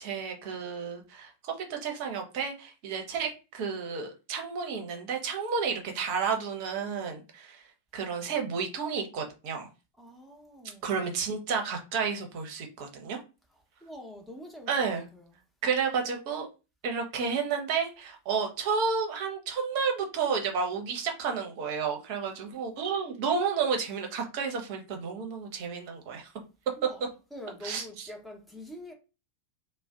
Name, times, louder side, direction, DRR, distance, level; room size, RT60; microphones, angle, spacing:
voice 1, 0.0-7.6 7.9-9.7 10.8-13.2 14.7-15.0 15.6-16.5 16.8-26.3 27.6-28.1, right 5 dB, 45° right, 0.8 m, -31 dB
voice 2, 10.0-11.0 13.8-15.4 26.8-28.9, left 1 dB, 5° left, 0.9 m, -45 dB
2.4 x 2.1 x 3.6 m
figure-of-eight pair, 90°, 0 cm